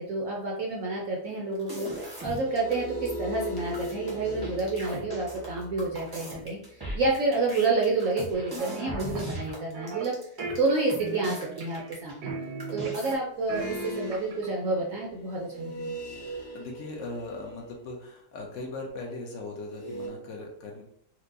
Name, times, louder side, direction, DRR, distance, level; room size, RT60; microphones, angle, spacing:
voice 1, 0.0-1.9 2.2-10.2 10.6-12.3 12.7-16.0, right 3 dB, 70° right, -1 dB, 0.8 m, -29 dB
sound 1, 1.5-2.7 3.1-3.2 3.4-12.3 12.6-13.1, right 1 dB, 20° right, 0.6 m, -39 dB
sound 2, 2.1-7.6 13.4-18.1 19.7-20.1, equal, 85° left, 1.3 m, -40 dB
sound 3, 8.6-9.3 9.7-10.1 10.4-11.9 12.2-13.2 13.5-14.5, right 2 dB, 85° right, 1.4 m, -37 dB
voice 2, 13.5-13.8 16.1-20.8, left 2 dB, 70° left, 1 dB, 0.7 m, -39 dB
4.4 x 2.1 x 2.6 m, 0.68 s
omnidirectional pair, 1.8 m